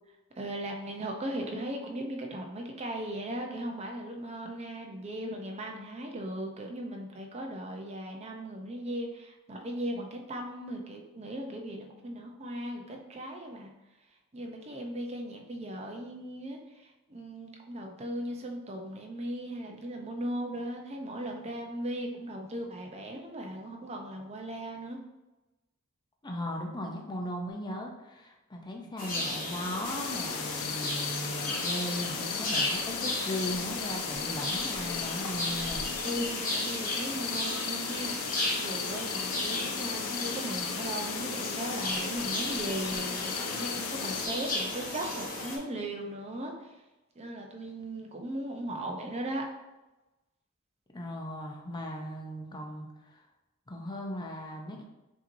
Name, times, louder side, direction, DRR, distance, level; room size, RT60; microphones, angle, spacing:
voice 1, 0.4-13.7 14.3-16.6 17.1-25.0 36.0-46.5 47.2-49.5, right 1 dB, 30° right, 1 dB, 0.6 m, -37 dB
voice 2, 26.2-35.9 50.9-52.9 53.7-54.8, left 1 dB, 20° left, 1 dB, 0.6 m, -37 dB
sound 1, 29.0-45.6, left 1 dB, 40° left, 0.9 m, -35 dB
sound 2, 29.8-44.3, left 6 dB, 65° left, 0.4 m, -36 dB
5.6 x 2.8 x 2.6 m, 1.0 s
head